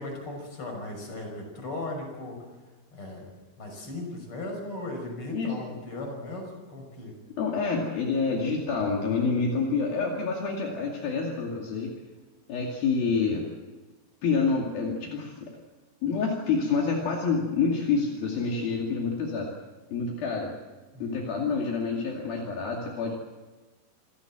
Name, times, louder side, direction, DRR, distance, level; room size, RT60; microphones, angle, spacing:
voice 1, 0.0-2.4 2.9-3.3 3.6-7.2 20.9-21.4, left 2 dB, 30° left, 2 dB, 6.7 m, -37 dB
voice 2, 7.4-11.9 12.5-13.4 14.2-15.5 16.0-19.5 19.9-20.5 21.0-23.1, left 4 dB, 65° left, -1 dB, 4.2 m, -27 dB
27.0 x 17.0 x 7.7 m, 1.3 s
omnidirectional pair, 4.6 m